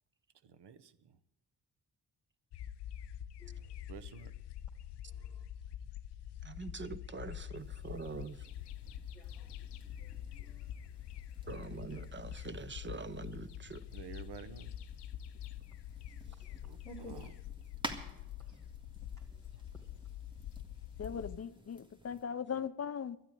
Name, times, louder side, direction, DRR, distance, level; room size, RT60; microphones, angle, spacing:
voice 1, 0.4-0.9 3.9-4.3 11.8-12.0 13.9-14.7 16.6-17.3, right 7 dB, 80° right, 1.0 m, -50 dB
sound 1, 2.5-21.4, left 10 dB, 80° left, 0.6 m, -46 dB
voice 2, 6.4-8.5 11.5-13.8, right 4 dB, 30° right, 0.8 m, -44 dB
sound 2, 7.5-22.2, equal, 10° right, 1.9 m, -52 dB
voice 3, 9.1-9.5 10.0-10.6 16.2-16.3 16.6-17.2, right 1 dB, 5° left, 2.0 m, -53 dB
voice 4, 21.0-23.2, left 7 dB, 40° left, 0.6 m, -39 dB
12.0 x 9.6 x 9.2 m
cardioid pair, 85°, 40 cm